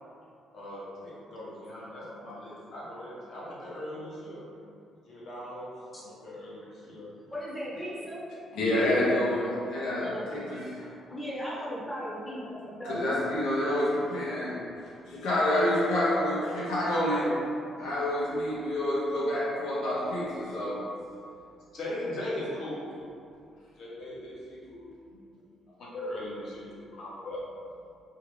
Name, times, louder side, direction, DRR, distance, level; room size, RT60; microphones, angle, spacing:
voice 1, 0.5-4.4 5.0-7.1 8.5-9.1 21.7-23.1 23.8-25.2 25.8-27.4, left 1 dB, 65° left, -7 dB, 1.0 m, -39 dB
voice 2, 7.3-8.2 10.0-10.5 11.1-13.1, equal, 5° left, -7 dB, 0.8 m, -37 dB
voice 3, 8.6-10.9 12.8-14.6 15.1-17.4 17.7-20.8, left 1 dB, 85° left, -8 dB, 0.7 m, -28 dB
2.7 x 2.4 x 3.1 m, 2.5 s
cardioid pair, 85°, 0 cm